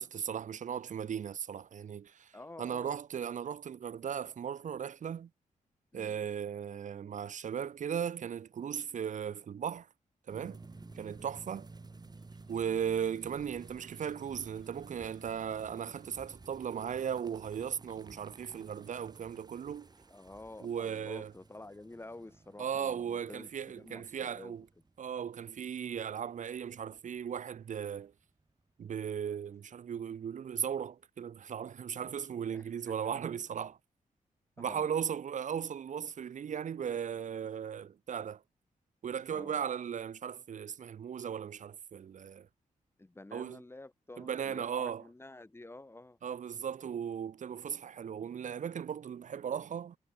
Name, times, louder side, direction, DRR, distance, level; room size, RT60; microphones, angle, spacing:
voice 1, 0.0-2.3 2.6-5.3 5.9-9.9 10.3-10.6 10.9-11.7 12.5-19.9 20.6-21.3 22.6-24.6 25.0-28.1 28.8-33.8 34.6-38.4 39.0-42.5 43.3-43.6 44.2-45.0 46.2-50.0, right 8 dB, 65° right, 0.9 m, -37 dB
voice 2, 2.3-3.0 5.9-6.2 10.7-11.0 20.1-24.6 32.5-33.1 34.6-35.2 39.3-39.6 43.0-46.2, left 2 dB, 15° left, 4.3 m, -50 dB
sound 1, 10.3-27.7 28.0-28.1 28.4-28.5 28.8-28.9 29.2-29.3, right 3 dB, 30° right, 2.9 m, -54 dB
Bird, 10.6-17.1, left 5 dB, 50° left, 6.5 m, -67 dB
cardioid pair, 95°, 14 cm